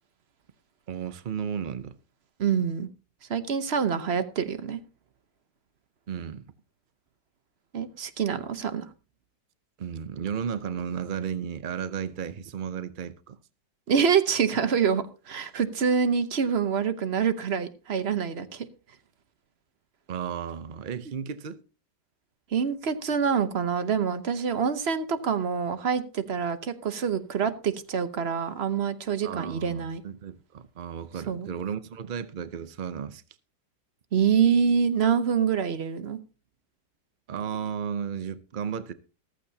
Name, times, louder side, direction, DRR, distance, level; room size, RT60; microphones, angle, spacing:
voice 1, 0.9-2.0 6.1-6.5 9.8-13.4 20.1-21.6 29.2-33.2 37.3-38.9, right 7 dB, 85° right, 0.4 m, -34 dB
voice 2, 2.4-2.9 3.3-4.8 7.7-8.9 13.9-18.7 22.5-30.0 31.3-31.5 34.1-36.2, right 7 dB, 45° right, 0.9 m, -26 dB
14.5 x 14.0 x 2.8 m
omnidirectional pair, 1.9 m